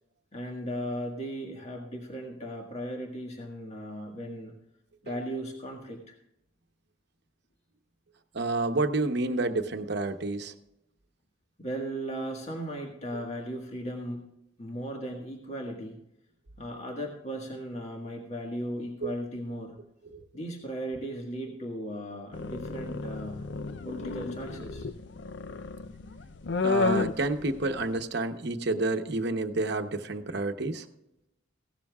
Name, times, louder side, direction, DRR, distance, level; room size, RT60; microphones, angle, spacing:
voice 1, 0.3-4.5 5.0-6.1 11.6-14.2 14.6-16.0 16.6-19.8 20.3-23.5 23.9-24.9, equal, 35° left, 0 dB, 1.7 m, -37 dB
voice 2, 8.3-10.5 19.0-19.1 20.1-20.2 26.6-30.9, right 2 dB, 55° right, 7 dB, 1.0 m, -29 dB
sound 1, 22.3-28.0, left 4 dB, 60° left, 0.5 m, -32 dB
16.5 x 13.0 x 2.4 m, 0.84 s
head